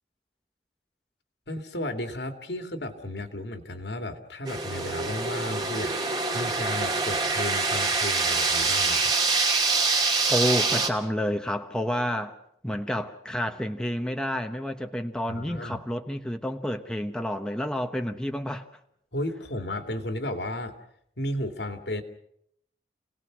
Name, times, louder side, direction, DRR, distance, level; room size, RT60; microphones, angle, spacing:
voice 1, 1.5-5.9 6.3-9.1 15.3-15.8 19.1-20.7 21.2-22.0, left 1 dB, 75° left, 7 dB, 2.5 m, -33 dB
sound 1, 4.4-10.9, right 3 dB, 25° right, 2.6 m, -25 dB
voice 2, 10.3-12.4 12.6-18.7, equal, 5° left, 5 dB, 1.1 m, -29 dB
29.0 x 18.5 x 6.2 m, 0.73 s
head